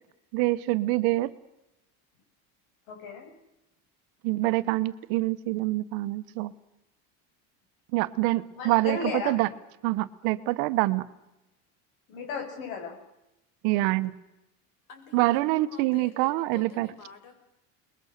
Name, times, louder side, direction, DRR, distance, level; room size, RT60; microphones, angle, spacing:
voice 1, 0.3-1.3 4.2-6.5 7.9-9.0 9.2-9.5 9.8-11.1 13.6-14.1 15.1-16.9, right 19 dB, 70° right, 13 dB, 1.2 m, -25 dB
voice 2, 2.9-3.3 8.5-9.4 12.1-13.0, left 5 dB, 80° left, 3 dB, 7.6 m, -34 dB
voice 3, 14.9-17.3, left 6 dB, 50° left, 6 dB, 5.8 m, -48 dB
28.5 x 21.5 x 6.6 m, 0.92 s
cardioid pair, 155°, 40 cm